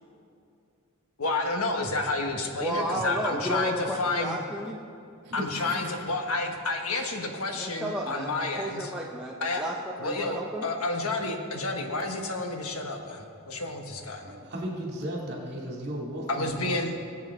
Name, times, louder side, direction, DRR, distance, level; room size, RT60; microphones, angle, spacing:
voice 1, 1.2-4.4 5.3-8.9 9.4-9.6 10.0-14.4 16.3-17.1, left 2 dB, 90° left, 4 dB, 1.3 m, -30 dB
voice 2, 2.6-4.8 7.6-10.7, equal, 5° right, -3 dB, 0.7 m, -32 dB
voice 3, 5.2-5.9 14.2-16.6, right 1 dB, 50° right, -2 dB, 2.6 m, -35 dB
20.0 x 8.4 x 3.8 m, 2.6 s
head